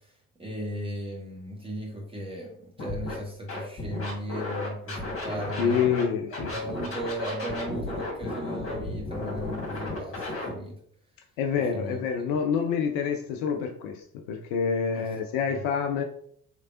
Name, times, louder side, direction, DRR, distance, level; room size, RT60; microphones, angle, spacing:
voice 1, 0.4-5.8 6.5-10.8 11.7-12.0 15.0-15.1, equal, 10° right, -2 dB, 1.1 m, -36 dB
Scratching (performance technique), 2.8-3.1 3.5-6.0 6.3-10.5, left 2 dB, 30° left, 1.5 m, -34 dB
voice 2, 5.6-6.7 11.4-16.0, left 6 dB, 50° left, 4 dB, 0.5 m, -27 dB
3.6 x 3.2 x 2.4 m, 0.64 s
figure-of-eight pair, 55°, 45 cm